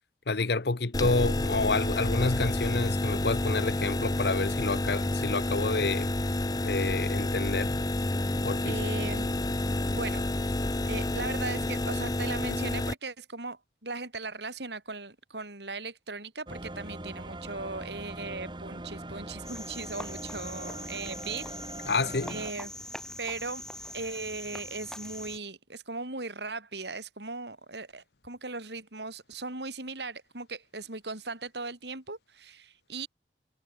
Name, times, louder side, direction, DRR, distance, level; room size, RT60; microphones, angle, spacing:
voice 1, 0.3-6.1 6.6-7.7 8.4-8.8 21.9-22.4, left 3 dB, 65° left, 1.0 m, -29 dB
sound 1, 0.9-12.9, left 1 dB, 20° left, 0.7 m, -29 dB
voice 2, 8.6-9.4 9.9-10.3 10.9-21.5 22.3-22.7 23.2-23.6 23.9-33.1, right 3 dB, 75° right, 5.1 m, -38 dB
sound 2, 16.5-22.5, right 1 dB, 25° right, 1.7 m, -41 dB
Cricket, 19.4-25.4, left 1 dB, 5° left, 5.7 m, -42 dB
head